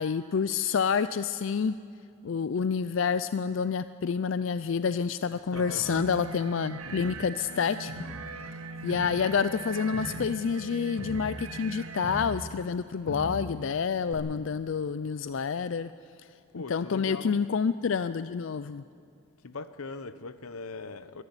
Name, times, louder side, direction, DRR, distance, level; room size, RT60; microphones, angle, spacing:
voice 1, 0.0-1.8 2.2-7.9 8.8-15.9 16.5-18.8, left 6 dB, 60° left, 0.4 m, -28 dB
voice 2, 5.5-5.8 16.5-17.4 19.4-21.2, left 3 dB, 85° left, 0.9 m, -40 dB
sound 1, 5.6-12.2, right 3 dB, 90° right, 1.2 m, -40 dB
Crowd, 5.8-7.6 7.9-12.8 13.1-13.7 14.1-14.2, equal, 65° right, 4.1 m, -41 dB
25.0 x 11.0 x 9.7 m
head